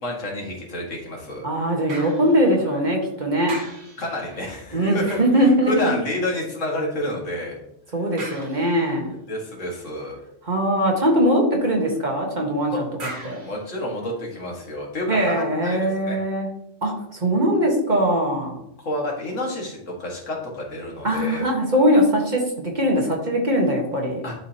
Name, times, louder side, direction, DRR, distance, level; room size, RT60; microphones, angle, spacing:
voice 1, 0.0-1.5 4.0-7.6 9.3-10.2 12.7-12.8 13.4-16.2 18.9-21.5 24.2-24.4, left 1 dB, 75° left, -1 dB, 2.1 m, -29 dB
voice 2, 1.4-3.5 4.7-5.9 7.9-9.1 10.4-12.8 13.2-13.4 15.1-16.5 16.8-18.5 21.0-24.2, equal, 40° right, 0 dB, 1.5 m, -21 dB
sound 1, 1.9-3.1 3.4-6.3 8.2-9.1 13.0-14.5 15.0-15.1, right 2 dB, 60° right, 1.6 m, -40 dB
11.0 x 4.9 x 2.9 m, 0.78 s
omnidirectional pair, 1.3 m